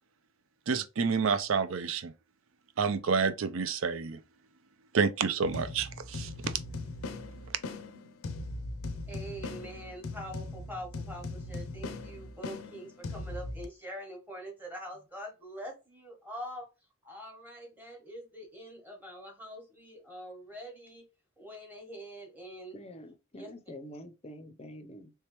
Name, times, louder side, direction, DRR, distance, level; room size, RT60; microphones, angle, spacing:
voice 1, 0.7-2.1 2.8-4.2 4.9-6.6, right 5 dB, 70° right, 0.5 m, -29 dB
sound 1, 5.4-13.7, left 2 dB, 80° left, 0.5 m, -40 dB
voice 2, 9.1-16.7 17.0-21.1 21.4-22.8 23.4-23.5, equal, 10° right, 1.1 m, -44 dB
voice 3, 22.7-25.1, left 1 dB, 30° left, 0.5 m, -46 dB
3.3 x 3.3 x 2.9 m
head